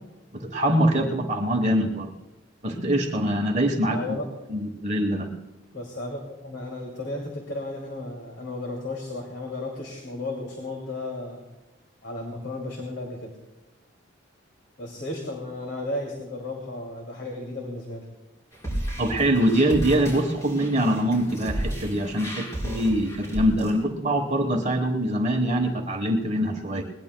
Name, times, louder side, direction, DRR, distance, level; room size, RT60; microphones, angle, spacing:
voice 1, 0.3-2.1 2.6-4.2 4.5-5.3 19.0-26.8, right 1 dB, 35° right, 3 dB, 1.1 m, -24 dB
voice 2, 3.9-4.3 5.7-11.4 12.0-13.4 14.8-18.1, left 2 dB, 65° left, 1 dB, 2.4 m, -34 dB
sound 1, 18.5-23.7, right 1 dB, 15° left, 5.2 m, -33 dB
21.5 x 19.0 x 2.2 m, 1.0 s
head